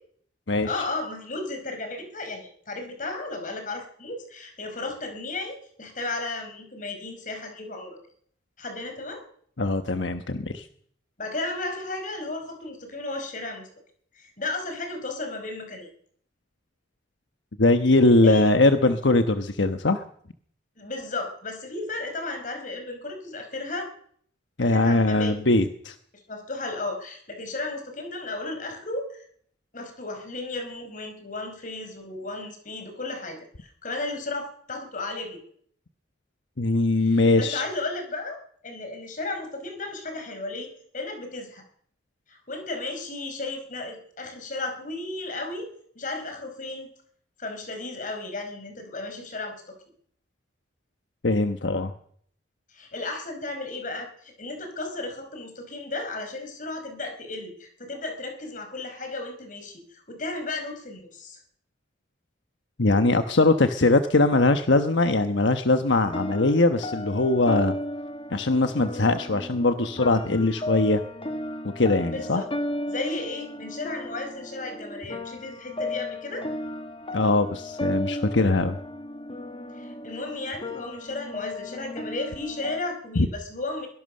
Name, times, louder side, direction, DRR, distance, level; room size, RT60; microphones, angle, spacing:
voice 1, 0.6-8.0 8.6-9.2 11.2-13.7 14.1-15.9 18.2-18.4 20.8-23.9 24.6-25.4 26.3-29.2 29.7-35.4 37.1-41.6 42.3-45.7 46.0-46.9 47.4-49.8 52.7-61.4 72.1-72.5 72.9-76.5 79.8-83.9, left 2 dB, 45° left, 6 dB, 5.2 m, -34 dB
voice 2, 9.6-10.7 17.6-20.0 24.6-25.9 36.6-37.6 51.2-51.9 62.8-67.8 68.3-71.0 71.7-72.4 77.1-78.8 83.2-83.3, left 2 dB, 80° left, 8 dB, 1.2 m, -21 dB
sound 1, 66.0-82.8, left 1 dB, 30° left, 1.6 m, -35 dB
22.5 x 18.5 x 6.6 m, 0.63 s
head